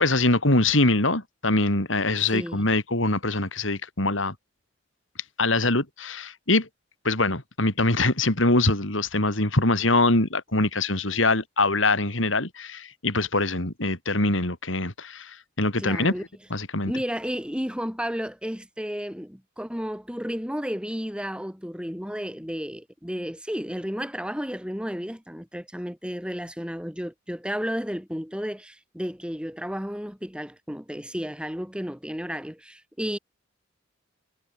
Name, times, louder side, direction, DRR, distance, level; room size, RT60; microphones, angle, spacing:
voice 1, 0.0-4.3 5.4-6.7 7.0-16.1 16.5-16.9, left 2 dB, 75° left, 4.5 m, -23 dB
voice 2, 2.3-2.6 15.8-16.2 16.8-33.2, equal, 5° right, 6.4 m, -32 dB
head